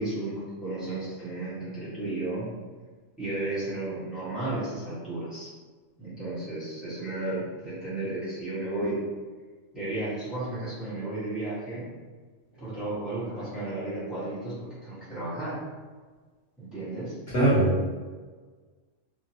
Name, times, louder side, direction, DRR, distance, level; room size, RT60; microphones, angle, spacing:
voice 1, 0.0-2.5 3.2-5.5 6.0-9.0 9.7-11.9 12.5-15.6 16.6-17.2, right 2 dB, ahead, -12 dB, 1.1 m, -33 dB
voice 2, 17.3-17.9, right 1 dB, 50° left, -10 dB, 1.3 m, -21 dB
3.0 x 2.5 x 2.8 m, 1.4 s
omnidirectional pair, 1.3 m